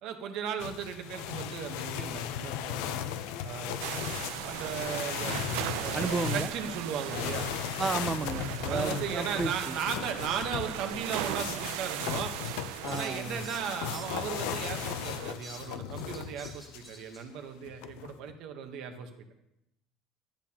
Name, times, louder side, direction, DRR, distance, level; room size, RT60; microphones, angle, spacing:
voice 1, 0.0-3.0 3.4-3.8 4.4-5.4 5.8-7.5 8.7-12.3 12.9-19.3, right 7 dB, 55° right, 6 dB, 0.9 m, -37 dB
sound 1, 0.6-16.9 17.7-18.3, left 9 dB, 85° left, 0.5 m, -37 dB
sound 2, 3.8-15.3, right 12 dB, 90° right, 0.4 m, -38 dB
voice 2, 5.9-6.5 7.8-9.8 12.8-13.4, right 4 dB, 20° right, 13 dB, 0.4 m, -33 dB
Fowl, 10.1-10.3 10.8-11.0 11.6-14.7 15.0-17.2, right 1 dB, ahead, 1.8 m, -51 dB
10.0 x 8.4 x 2.9 m, 0.84 s
cardioid pair, 155°, 0 cm